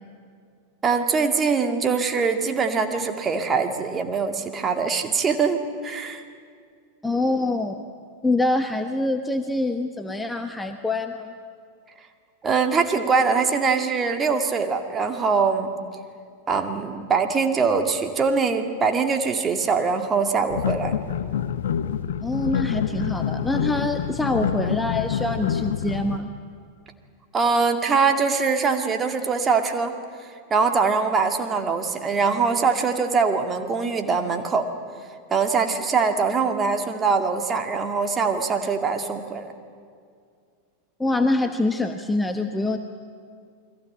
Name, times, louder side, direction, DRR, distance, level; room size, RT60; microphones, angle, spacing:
voice 1, 0.8-6.2 12.4-15.7 16.5-20.9 27.3-29.9 30.5-34.7 35.3-39.5, right 5 dB, 20° right, 5 dB, 2.1 m, -23 dB
voice 2, 7.0-7.8 8.2-11.3 22.2-26.3 41.0-42.8, left 2 dB, 5° left, 7 dB, 1.2 m, -25 dB
sound 1, 20.5-26.2, left 8 dB, 60° left, 0.9 m, -27 dB
29.0 x 21.5 x 8.7 m, 2.2 s
figure-of-eight pair, 90°, 0 cm